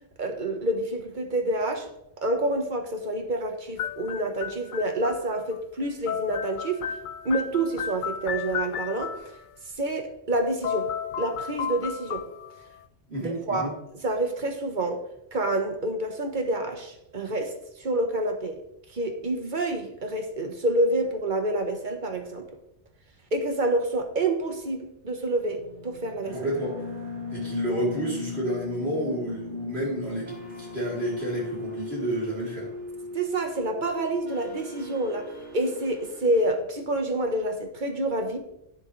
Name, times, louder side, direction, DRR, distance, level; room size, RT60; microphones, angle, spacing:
voice 1, 0.2-1.9 2.2-6.8 7.2-9.1 9.8-10.9 11.2-12.3 13.2-13.7 14.0-18.6 18.9-22.5 23.3-26.4 33.1-38.4, right 1 dB, 45° right, 1.5 m, -28 dB
sound 1, 3.8-5.6 5.8-9.4 10.3-10.4 10.6-12.8, left 8 dB, 60° left, 0.5 m, -33 dB
voice 2, 13.1-13.7 26.3-26.7 27.3-30.3 30.6-32.7, right 1 dB, 65° right, 3.8 m, -30 dB
sound 2, 25.5-36.5, left 3 dB, 80° right, 2.4 m, -38 dB
11.0 x 10.5 x 3.3 m
omnidirectional pair, 1.2 m